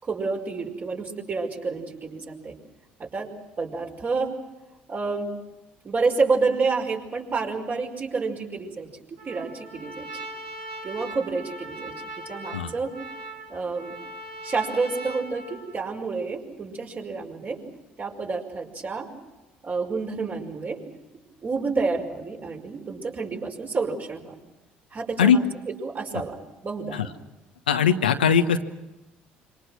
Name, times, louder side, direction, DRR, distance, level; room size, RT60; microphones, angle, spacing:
voice 1, 0.0-2.5 3.0-3.3 3.6-4.3 4.9-5.3 5.8-10.3 10.8-12.9 13.5-14.0 14.4-17.6 18.0-19.1 19.6-20.8 21.4-24.4 24.9-26.4 26.6-27.0, right 4 dB, 40° right, 2 dB, 5.5 m, -29 dB
Trumpet, 9.2-16.0, right 1 dB, 80° right, 4.9 m, -39 dB
voice 2, 27.7-28.6, left 7 dB, 85° left, 8 dB, 1.2 m, -19 dB
26.5 x 25.5 x 6.2 m, 1.0 s
hypercardioid pair, 55°, 5 cm